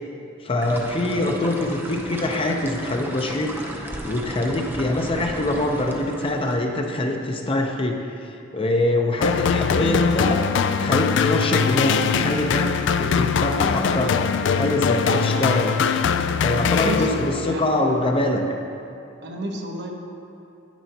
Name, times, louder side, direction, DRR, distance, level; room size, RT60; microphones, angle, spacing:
voice 1, 0.4-8.0 8.5-10.4 10.8-15.8 16.4-18.4, left 1 dB, 30° left, 3 dB, 0.6 m, -24 dB
sound 1, 0.6-6.6, right 1 dB, 10° right, 0.7 m, -35 dB
sound 2, 9.2-17.5, left 6 dB, 70° left, 0.3 m, -22 dB
voice 2, 16.6-18.0 19.2-19.9, equal, 65° right, 1 dB, 0.9 m, -31 dB
9.3 x 9.0 x 2.8 m, 2.8 s
head